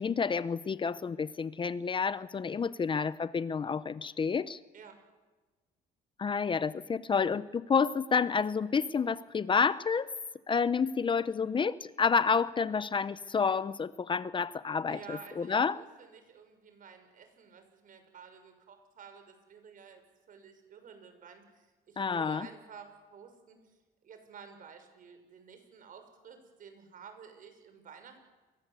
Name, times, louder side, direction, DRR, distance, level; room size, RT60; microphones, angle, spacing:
voice 1, 0.0-4.6 6.2-10.1 10.5-15.8 22.0-22.5, left 5 dB, 30° left, 16 dB, 0.8 m, -29 dB
voice 2, 14.9-20.0 20.3-23.6 24.0-28.2, right 6 dB, 55° right, 7 dB, 6.3 m, -52 dB
30.0 x 23.0 x 8.4 m, 1.3 s
cardioid pair, 110°, 17 cm